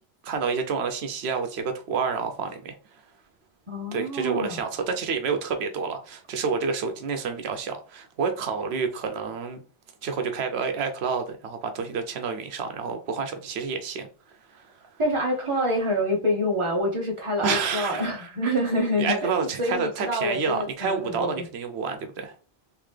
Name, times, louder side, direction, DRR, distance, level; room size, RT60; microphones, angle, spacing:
voice 1, 0.2-3.0 3.9-9.6 10.0-14.1 14.5-14.8 17.4-18.5 19.0-22.3, right 5 dB, 85° right, 0.9 m, -29 dB
voice 2, 3.7-4.6 15.0-21.4, equal, 30° right, 1.1 m, -27 dB
3.9 x 2.8 x 3.2 m
omnidirectional pair, 1.1 m